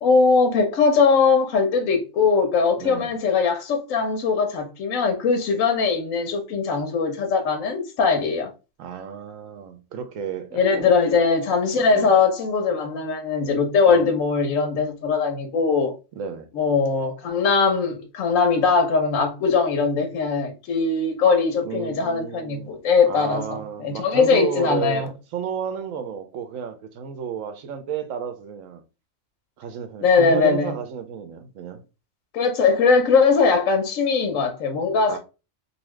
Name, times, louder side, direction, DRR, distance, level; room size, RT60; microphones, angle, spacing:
voice 1, 0.0-8.5 10.5-15.9 16.5-25.1 30.0-30.7 32.3-35.2, left 5 dB, 75° left, 1.1 m, -20 dB
voice 2, 2.8-3.1 8.8-10.9 11.7-12.2 13.9-14.2 16.1-16.5 21.6-22.7 23.0-28.8 29.6-31.8 35.1-35.2, right 7 dB, 80° right, 1.0 m, -32 dB
2.7 x 2.7 x 3.1 m
omnidirectional pair, 1.4 m